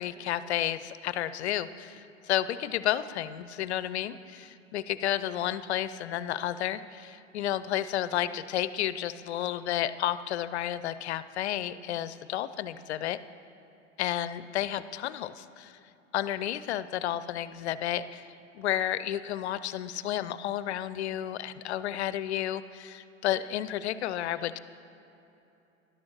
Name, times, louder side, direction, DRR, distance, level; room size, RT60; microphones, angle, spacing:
voice 1, 0.0-13.2 14.0-15.7 16.1-18.3 18.5-24.6, left 12 dB, 55° left, 15 dB, 0.5 m, -31 dB
18.5 x 11.5 x 3.0 m, 2.9 s
figure-of-eight pair, 90°, 39 cm